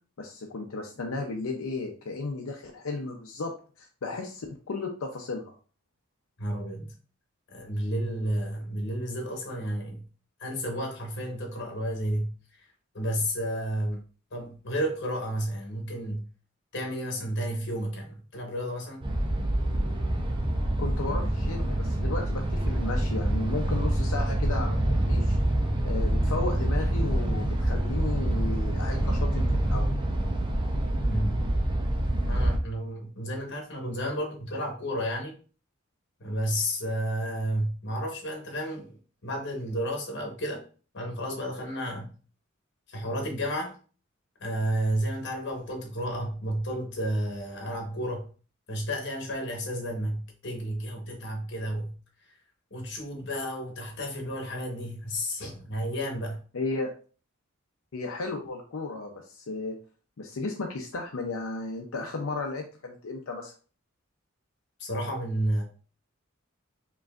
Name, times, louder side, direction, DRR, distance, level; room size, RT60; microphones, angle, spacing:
voice 1, 0.2-5.5 20.8-25.4 25.8-30.0 56.5-56.9 57.9-59.8 60.2-63.5, left 3 dB, 90° left, 0.6 m, -34 dB
voice 2, 6.4-6.9 7.5-10.1 10.4-14.0 14.3-16.3 16.7-19.0 31.1-31.4 32.2-35.4 36.2-40.6 40.9-42.1 42.9-43.8 44.4-48.3 48.7-52.0 52.2-52.4 52.7-56.4 64.8-65.6, equal, 60° left, 1.2 m, -32 dB
sound 1, 19.0-32.6, right 1 dB, 25° right, 0.6 m, -26 dB
4.9 x 3.1 x 2.4 m
head